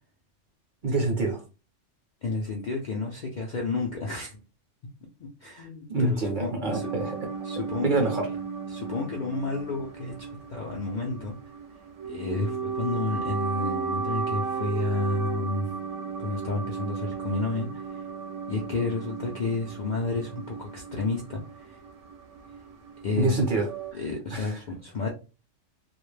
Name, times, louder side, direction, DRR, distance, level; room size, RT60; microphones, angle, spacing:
voice 1, 0.8-1.4 5.9-7.2 7.8-8.3 23.2-24.0 24.3-24.6, right 2 dB, 50° right, 0.7 m, -26 dB
voice 2, 2.2-4.4 5.2-6.9 7.4-8.1 8.7-11.4 12.1-15.7 16.2-18.0 18.5-21.8 23.0-23.4 23.9-25.1, left 3 dB, 60° left, 0.5 m, -31 dB
sound 1, 6.7-23.9, right 5 dB, 75° right, 0.9 m, -35 dB
2.3 x 2.0 x 3.1 m
omnidirectional pair, 1.2 m